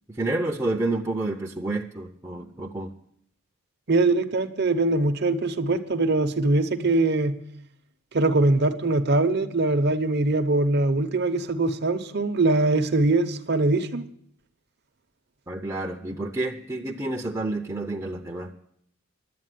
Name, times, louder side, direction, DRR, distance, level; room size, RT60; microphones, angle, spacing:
voice 1, 0.2-2.9 15.5-18.6, right 2 dB, 15° right, 0 dB, 0.6 m, -29 dB
voice 2, 3.9-7.4 8.1-14.0, right 2 dB, 50° right, 8 dB, 0.9 m, -22 dB
11.0 x 8.4 x 9.2 m, 0.70 s
head